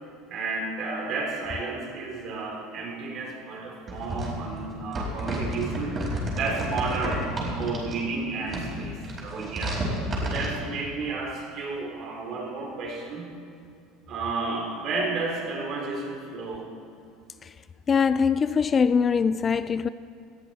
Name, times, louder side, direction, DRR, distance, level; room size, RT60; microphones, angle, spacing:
voice 1, 0.3-6.0 6.3-13.3 14.1-16.7, right 3 dB, 50° right, 3.7 m, -32 dB
sound 1, 3.9-8.0 8.4-10.5, right 1 dB, 25° right, 4.5 m, -31 dB
voice 2, 17.9-19.9, left 6 dB, 25° left, 0.3 m, -22 dB
19.5 x 13.5 x 4.2 m
supercardioid pair, 135°, 0 cm